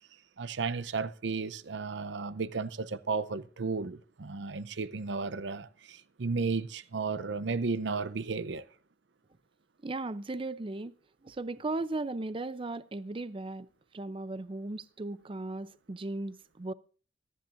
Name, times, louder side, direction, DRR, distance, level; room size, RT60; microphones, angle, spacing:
voice 1, 0.4-8.7, right 4 dB, 80° right, 0.7 m, -34 dB
voice 2, 9.8-10.9 11.2-13.7 13.9-16.7, right 2 dB, 30° right, 0.5 m, -36 dB
25.0 x 10.5 x 2.6 m
head